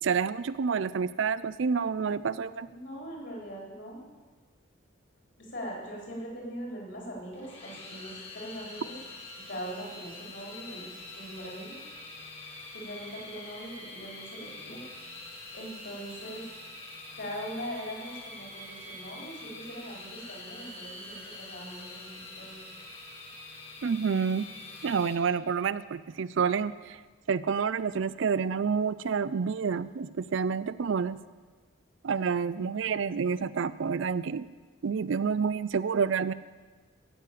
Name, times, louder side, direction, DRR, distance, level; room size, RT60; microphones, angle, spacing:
voice 1, 0.0-2.7 23.8-24.5 24.8-27.0 27.3-31.2 32.0-34.5 34.8-36.3, right 6 dB, 65° right, 16 dB, 0.4 m, -28 dB
voice 2, 2.7-4.0 5.4-8.9 9.5-11.8 12.7-14.8 15.5-16.4 17.2-22.6, equal, 55° left, -2 dB, 4.1 m, -41 dB
sound 1, 7.3-25.2, left 2 dB, 30° left, 1.9 m, -45 dB
15.0 x 6.6 x 8.4 m, 1.4 s
head